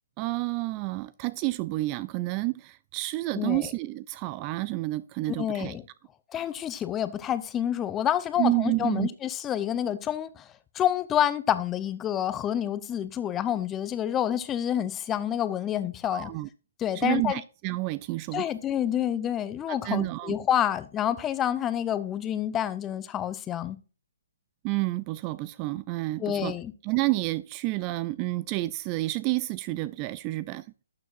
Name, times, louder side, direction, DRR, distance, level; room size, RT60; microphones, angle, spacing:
voice 1, 0.2-5.8 8.4-9.1 16.1-16.5 16.9-18.5 19.7-20.3 24.6-26.6 26.8-30.7, right 20 dB, 30° right, 0.3 m, -29 dB
voice 2, 3.3-3.7 5.3-5.8 6.3-10.4 10.7-16.3 16.8-17.4 18.3-23.8 26.2-26.7, left 10 dB, 15° left, 0.7 m, -28 dB
12.0 x 6.9 x 2.5 m
figure-of-eight pair, 135°, 0 cm